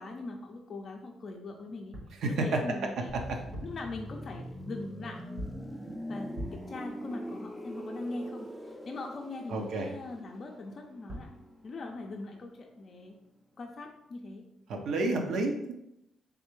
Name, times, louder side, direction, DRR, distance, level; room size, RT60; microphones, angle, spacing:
voice 1, 0.0-3.1 3.6-5.3 6.1-11.4 11.6-13.2 13.6-14.5 15.3-15.5, left 2 dB, 45° left, 0 dB, 0.5 m, -41 dB
sound 1, 1.9-2.2 3.3-3.9 5.4-5.7 6.3-6.8 10.8-10.9 11.1-11.4, equal, 55° right, 1.0 m, -41 dB
voice 2, 2.2-2.6 9.5-9.9 14.7-15.7, right 2 dB, 70° right, 3 dB, 0.7 m, -30 dB
sound 2, 3.1-12.7 13.0-13.2, equal, 5° right, 0.5 m, -43 dB
3.6 x 3.2 x 3.1 m, 0.83 s
cardioid pair, 90°, 0 cm